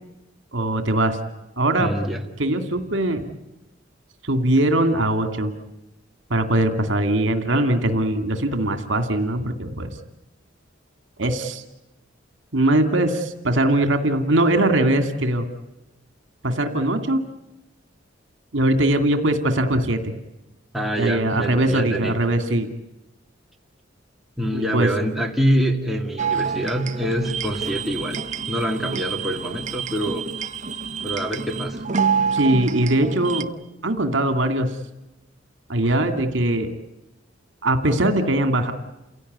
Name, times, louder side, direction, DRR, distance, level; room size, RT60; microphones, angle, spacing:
voice 1, 0.5-1.2 1.6-1.9 2.4-3.3 4.2-5.5 6.3-10.0 11.2-11.6 12.5-15.5 16.4-17.2 18.5-20.1 21.0-22.7 24.5-24.9 32.3-33.5 33.8-34.8 35.7-36.7 37.6-38.7, right 1 dB, 65° right, 7 dB, 2.4 m, -21 dB
voice 2, 1.8-2.2 20.7-22.2 24.4-28.2 28.5-30.3 31.0-31.8, right 1 dB, ahead, 0 dB, 2.3 m, -25 dB
sound 1, 26.2-33.4, right 6 dB, 40° right, 1.1 m, -27 dB
29.5 x 17.0 x 9.5 m, 0.96 s
head